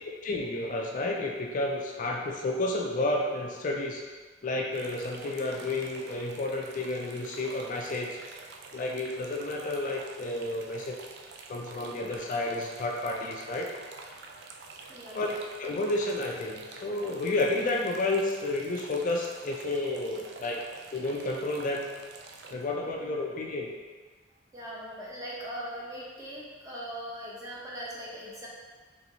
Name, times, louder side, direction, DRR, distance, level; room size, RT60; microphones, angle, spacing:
voice 1, 0.2-4.0 4.4-8.1 8.7-11.0 11.5-13.7 15.1-15.3 15.6-20.6 20.9-21.9 22.5-23.7, left 2 dB, 45° left, 0 dB, 0.3 m, -31 dB
sound 1, 4.7-22.5, right 4 dB, 60° right, 0.3 m, -48 dB
voice 2, 14.9-15.2 24.5-28.5, equal, 20° right, -5 dB, 0.7 m, -40 dB
4.2 x 3.0 x 2.8 m, 1.4 s
head